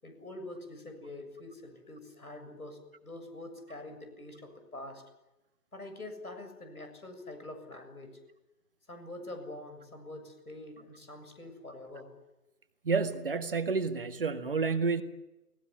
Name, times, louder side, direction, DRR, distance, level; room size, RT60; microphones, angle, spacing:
voice 1, 0.0-5.0 5.7-8.2 8.9-12.2, left 2 dB, 65° left, 7 dB, 7.2 m, -45 dB
voice 2, 12.8-15.0, right 4 dB, 35° right, 9 dB, 1.8 m, -29 dB
30.0 x 19.0 x 9.7 m, 0.99 s
figure-of-eight pair, 150°, 47 cm